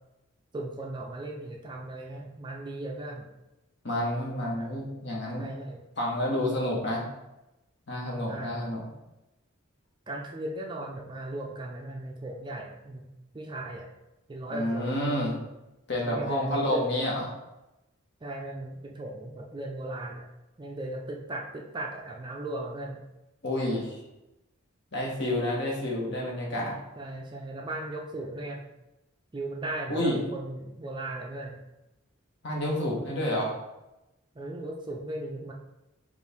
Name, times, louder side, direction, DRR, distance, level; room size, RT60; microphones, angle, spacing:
voice 1, 0.5-3.3 4.6-4.7 5.4-5.8 8.3-8.6 10.1-13.1 13.3-13.9 14.3-15.0 16.0-16.8 18.2-20.3 20.6-23.0 27.0-28.6 29.3-31.6 34.4-35.5, right 1 dB, 20° right, 0 dB, 0.4 m, -37 dB
voice 2, 3.8-5.5 6.0-7.0 7.9-8.9 14.5-15.3 15.9-17.3 23.4-24.0 24.9-26.7 29.9-30.2 32.4-33.5, left 1 dB, 55° left, -3 dB, 1.1 m, -29 dB
4.5 x 2.5 x 3.4 m, 0.96 s
head